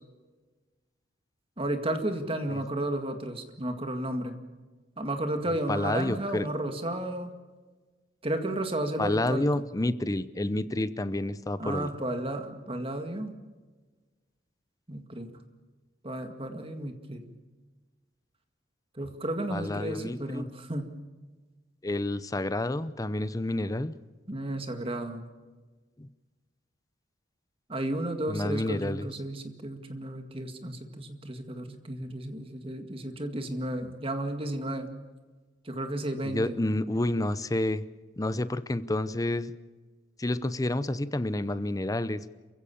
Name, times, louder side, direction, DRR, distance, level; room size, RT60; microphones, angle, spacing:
voice 1, 1.6-4.4 5.0-7.3 8.2-9.7 11.6-13.3 14.9-15.3 16.0-17.3 19.0-20.9 24.3-25.3 27.7-34.9 35.7-36.6, right 1 dB, 30° right, 7 dB, 2.0 m, -33 dB
voice 2, 5.7-6.5 9.0-11.9 19.5-20.5 21.8-23.9 26.0-26.1 28.3-29.1 36.2-37.8 38.2-39.5 40.2-42.2, left 1 dB, 20° left, 15 dB, 0.7 m, -29 dB
28.0 x 15.5 x 7.2 m, 1.3 s
head